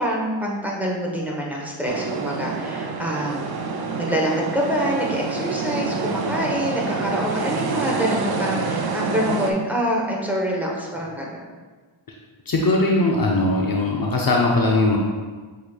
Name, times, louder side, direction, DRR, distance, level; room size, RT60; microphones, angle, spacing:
voice 1, 0.0-3.4 4.0-11.4, equal, 5° right, -3 dB, 1.0 m, -25 dB
sound 1, 1.9-9.5, right 4 dB, 50° right, 0.6 m, -27 dB
voice 2, 12.5-15.0, left 2 dB, 45° left, -1 dB, 0.6 m, -20 dB
6.9 x 3.0 x 2.4 m, 1.4 s
cardioid pair, 50°, 49 cm